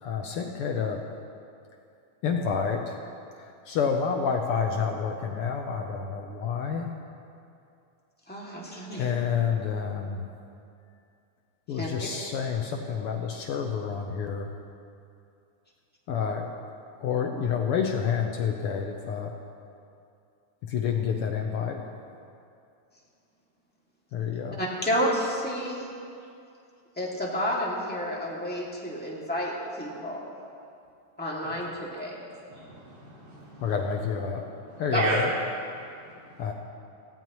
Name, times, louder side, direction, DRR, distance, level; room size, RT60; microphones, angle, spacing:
voice 1, 0.0-1.0 2.2-3.0 3.7-6.9 9.0-10.3 11.7-14.5 16.1-16.5 17.0-19.3 20.6-21.8 24.1-24.6 33.6-34.5 34.8-35.3 36.4-36.5, left 6 dB, 70° left, 3 dB, 1.3 m, -29 dB
voice 2, 8.3-9.1 11.7-11.9 24.6-25.9 27.0-30.3 31.2-32.2 34.9-35.1, equal, 5° left, -5 dB, 1.8 m, -30 dB
voice 3, 32.5-33.7 34.7-35.2 35.8-36.4, right 2 dB, 80° right, -5 dB, 4.3 m, -34 dB
18.5 x 15.0 x 3.1 m, 2.5 s
omnidirectional pair, 3.4 m